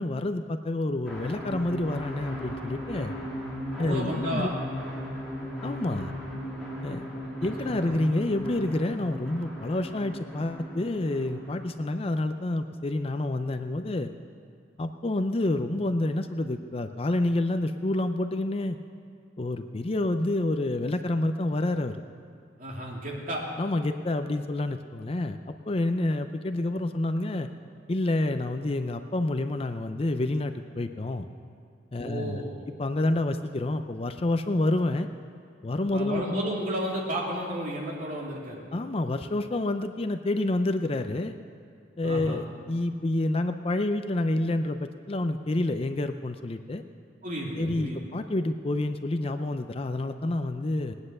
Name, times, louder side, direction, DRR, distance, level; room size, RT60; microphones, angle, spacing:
voice 1, 0.0-3.1 3.8-4.5 5.6-6.1 6.8-7.0 7.4-14.1 14.8-18.8 19.4-22.0 23.6-27.5 27.9-31.3 31.9-32.4 32.8-35.1 35.6-36.2 38.7-41.3 42.0-46.8 47.6-50.9, left 2 dB, 30° left, 8 dB, 0.5 m, -28 dB
sound 1, 1.0-12.2, equal, 5° left, 2.9 m, -37 dB
voice 2, 3.8-4.5 7.2-7.3 7.6-7.9 22.6-23.4 32.0-32.6 35.9-38.6 42.0-42.4 47.2-48.1, equal, 45° right, -3 dB, 3.0 m, -33 dB
19.0 x 9.8 x 6.6 m, 2.4 s
head